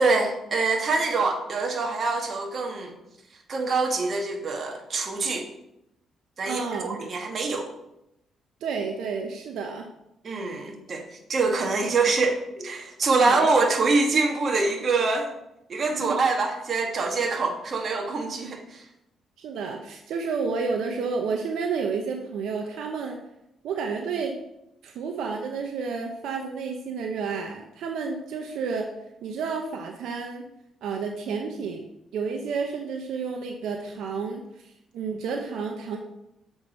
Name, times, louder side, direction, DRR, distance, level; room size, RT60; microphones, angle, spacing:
voice 1, 0.0-2.9 3.5-5.5 6.4-7.7 10.2-11.0 11.3-15.3 15.7-18.8, right 3 dB, 45° right, 3 dB, 1.5 m, -25 dB
voice 2, 6.5-7.0 8.6-9.9 13.2-13.5 15.9-16.2 19.4-23.2 23.6-24.4 24.8-28.9 29.2-30.5 30.8-31.9 32.1-36.0, right 5 dB, 80° right, 2 dB, 0.8 m, -31 dB
7.1 x 4.8 x 5.3 m, 0.86 s
cardioid pair, 90°, 0 cm